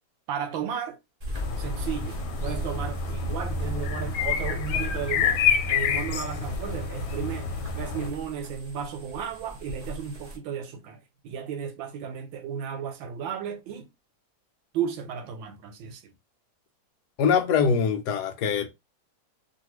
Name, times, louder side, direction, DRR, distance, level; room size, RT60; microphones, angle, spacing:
voice 1, 0.3-1.0 1.6-13.9 14.7-16.1, right 8 dB, 85° right, 1.4 m, -34 dB
sound 1, 1.2-10.4, equal, 40° right, 0.5 m, -37 dB
sound 2, 1.3-8.1, left 6 dB, 90° left, 1.4 m, -28 dB
voice 2, 17.2-18.7, left 6 dB, 70° left, 1.0 m, -23 dB
2.8 x 2.6 x 3.0 m
omnidirectional pair, 2.1 m